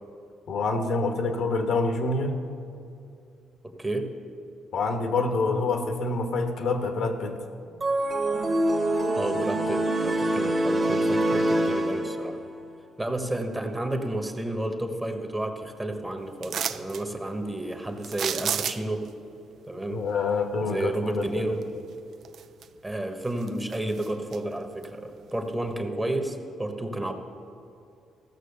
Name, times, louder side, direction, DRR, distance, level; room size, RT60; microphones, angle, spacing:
voice 1, 0.5-2.3 4.7-7.4 19.9-21.3, left 3 dB, 70° left, 6 dB, 1.2 m, -26 dB
voice 2, 3.6-4.2 9.2-12.4 13.0-19.0 19.6-20.0 20.6-21.7 22.8-27.1, right 1 dB, 15° right, 5 dB, 1.1 m, -31 dB
sound 1, 7.8-12.5, right 1 dB, 30° right, 1.3 m, -25 dB
sound 2, 16.4-17.0 18.0-19.1 21.6-21.7 22.2-22.9 23.3-24.4 24.8-24.9, right 8 dB, 65° right, 0.4 m, -31 dB
15.0 x 6.3 x 6.7 m, 2.5 s
cardioid pair, 90°, 0 cm